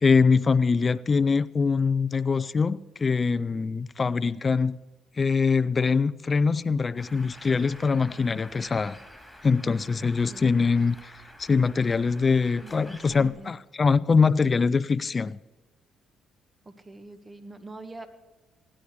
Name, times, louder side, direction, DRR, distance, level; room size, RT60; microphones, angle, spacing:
voice 1, 0.0-4.8 5.2-9.0 9.4-11.1 11.4-15.4, left 5 dB, 35° left, 0.6 m, -23 dB
Bird, 7.0-13.3, equal, ahead, 4.2 m, -48 dB
voice 2, 10.0-10.6 12.6-13.5 16.7-18.1, right 2 dB, 25° right, 1.8 m, -44 dB
17.0 x 10.0 x 6.8 m
supercardioid pair, 60°, 0 cm